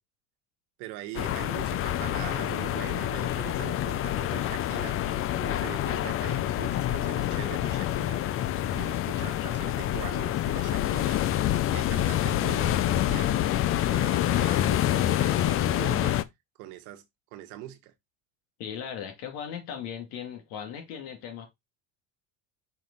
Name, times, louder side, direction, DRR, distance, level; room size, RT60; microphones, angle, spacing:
voice 1, 0.8-5.0 5.4-8.3 8.7-11.2 11.7-13.5 13.9-16.2 16.6-17.0 17.3-17.9, right 14 dB, 75° right, 1.5 m, -42 dB
sound 1, 1.1-16.2, left 12 dB, 35° left, 0.5 m, -27 dB
voice 2, 18.6-21.5, left 8 dB, 65° left, 2.6 m, -38 dB
5.9 x 2.9 x 5.4 m
cardioid pair, 130°, 38 cm